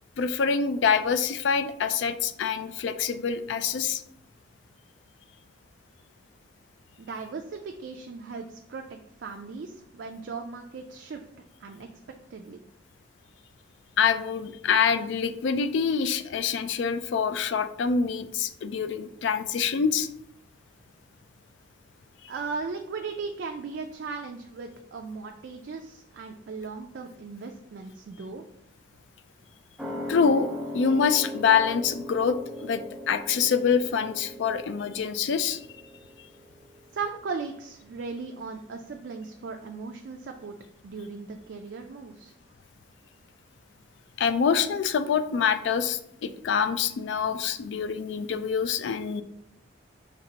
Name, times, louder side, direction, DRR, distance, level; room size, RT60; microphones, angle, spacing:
voice 1, 0.2-4.0 14.0-20.1 30.1-30.5 30.7-35.6 44.2-49.2, left 6 dB, 70° left, 11 dB, 0.3 m, -25 dB
voice 2, 7.0-11.2 11.6-11.9 12.3-12.6 22.3-28.4 36.9-40.5 40.8-42.3, right 4 dB, 65° right, 3 dB, 0.4 m, -37 dB
sound 1, 29.8-36.9 37.2-37.3, left 1 dB, 5° right, 0.5 m, -39 dB
5.2 x 3.3 x 2.8 m, 0.74 s
head